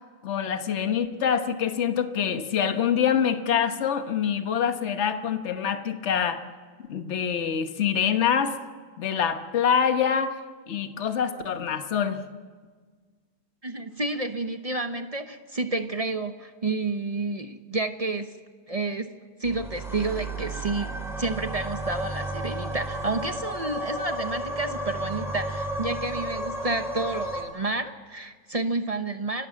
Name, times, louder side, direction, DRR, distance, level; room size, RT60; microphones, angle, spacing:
voice 1, 0.2-6.4 6.9-8.5 9.0-10.4 10.7-12.2, left 8 dB, 50° left, 8 dB, 1.4 m, -25 dB
voice 2, 13.6-18.3 18.7-19.1 19.4-20.9 21.2-29.5, right 3 dB, 35° right, 8 dB, 0.6 m, -30 dB
sound 1, 19.4-27.4, right 1 dB, ahead, 3.4 m, -33 dB
29.5 x 12.0 x 7.5 m, 1.5 s
omnidirectional pair, 1.6 m